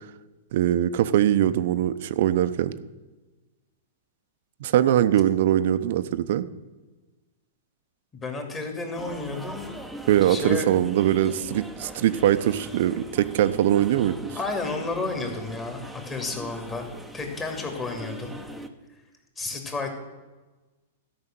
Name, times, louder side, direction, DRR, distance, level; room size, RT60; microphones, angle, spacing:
voice 1, 0.5-2.7 4.6-6.5 10.1-14.2, right 11 dB, 60° right, 13 dB, 0.7 m, -22 dB
voice 2, 8.1-9.7 10.2-10.7 14.3-16.9 17.1-18.3 19.4-19.9, left 3 dB, 20° left, 3 dB, 2.6 m, -31 dB
sound 1, 9.0-18.7, right 1 dB, ahead, 1.0 m, -41 dB
13.0 x 5.7 x 9.0 m, 1.2 s
hypercardioid pair, 125°, 0 cm